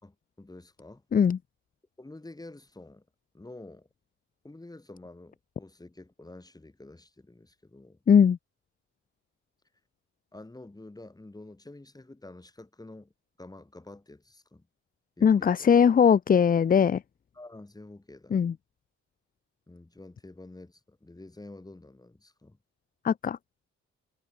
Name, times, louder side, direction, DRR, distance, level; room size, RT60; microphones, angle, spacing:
voice 1, 0.0-1.0 2.0-3.1 3.3-3.9 4.4-8.0 10.3-13.1 13.4-14.7 15.2-15.7 17.3-18.4 19.7-22.6, left 2 dB, 10° left, 3.4 m, -48 dB
voice 2, 8.1-8.4 15.2-17.0 18.3-18.5 23.0-23.4, left 7 dB, 30° left, 0.6 m, -20 dB
cardioid pair, 90°, 30 cm